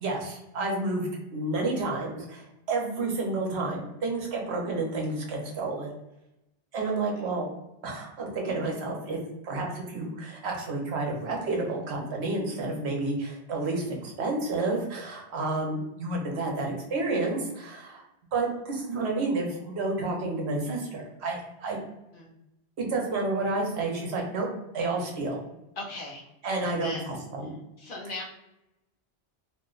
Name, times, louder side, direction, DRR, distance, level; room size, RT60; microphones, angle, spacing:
voice 1, 0.0-5.9 6.7-7.5 7.8-9.2 9.4-18.0 18.3-21.8 22.8-24.5 24.7-25.4 26.4-27.5, right 2 dB, 75° right, 0 dB, 1.0 m, -30 dB
voice 2, 6.8-7.3 22.1-22.3 25.8-26.2 26.6-27.1 27.8-28.2, left 2 dB, 60° left, -1 dB, 0.7 m, -39 dB
2.6 x 2.1 x 3.7 m, 0.91 s
omnidirectional pair, 1.1 m